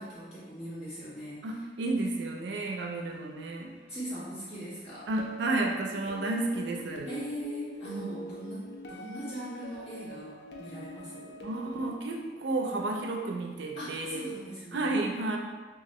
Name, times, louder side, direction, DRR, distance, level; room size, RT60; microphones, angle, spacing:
voice 1, 0.0-1.5 3.9-5.1 7.1-11.4 13.8-14.9, equal, 35° left, -11 dB, 1.3 m, -40 dB
voice 2, 1.4-3.7 5.1-7.1 11.4-14.3 14.7-15.4, right 2 dB, 80° right, 1 dB, 0.4 m, -32 dB
sound 1, 5.2-12.0, equal, 75° left, 0.4 m, -44 dB
2.9 x 2.4 x 3.0 m, 1.4 s
head